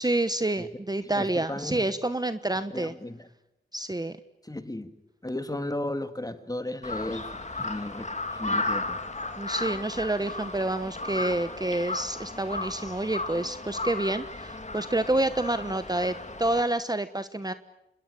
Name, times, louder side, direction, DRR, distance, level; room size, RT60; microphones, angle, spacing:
voice 1, 0.0-2.9 3.7-4.2 9.4-17.5, right 2 dB, 20° right, 1.1 m, -28 dB
voice 2, 1.1-1.9 2.7-3.3 4.4-4.9 5.2-9.0 12.8-12.9, left 1 dB, 20° left, 2.4 m, -35 dB
Crow, 6.8-16.6, left 2 dB, 35° left, 2.9 m, -34 dB
27.5 x 21.0 x 8.8 m
cardioid pair, 55°, 21 cm